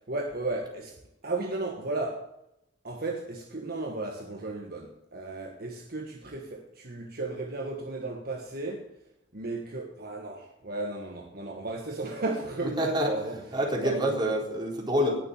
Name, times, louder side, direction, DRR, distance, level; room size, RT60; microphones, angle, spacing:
voice 1, 0.1-2.3 2.8-8.9 9.3-13.4 13.8-14.2, right 2 dB, 55° right, 1.5 m, -34 dB
voice 2, 12.6-13.1 13.5-15.2, equal, 25° right, 4.3 m, -27 dB
19.0 x 7.2 x 7.3 m
head